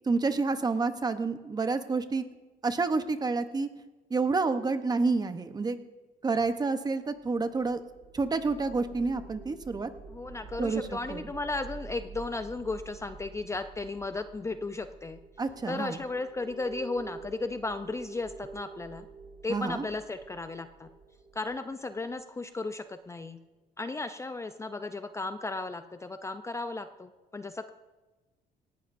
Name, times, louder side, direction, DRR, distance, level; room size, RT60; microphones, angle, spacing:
voice 1, 0.1-2.2 2.6-3.7 4.1-5.8 6.2-7.8 8.1-9.9 10.6-10.8 11.1-11.2 15.4-16.0 19.5-19.8, right 4 dB, 25° right, 10 dB, 0.9 m, -28 dB
sound 1, 7.2-22.4, right 4 dB, 45° right, 5.1 m, -48 dB
voice 2, 10.1-15.2 15.7-19.1 19.4-20.9 21.3-23.4 23.8-27.7, left 3 dB, 15° left, 9 dB, 0.5 m, -35 dB
18.5 x 15.5 x 2.6 m, 1.2 s
cardioid pair, 110°, 17 cm